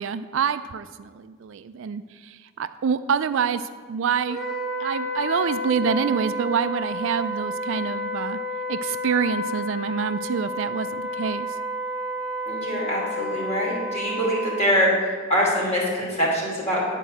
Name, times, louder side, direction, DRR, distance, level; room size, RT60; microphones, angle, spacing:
voice 1, 0.0-3.6 3.9-4.4 4.8-8.4 8.7-11.6, right 6 dB, 60° right, 12 dB, 0.3 m, -26 dB
Wind instrument woodwind instrument, 4.3-14.7, left 1 dB, ahead, 1.0 m, -31 dB
voice 2, 12.5-16.9, equal, 30° left, -4 dB, 2.8 m, -24 dB
9.9 x 4.5 x 7.6 m, 1.5 s
head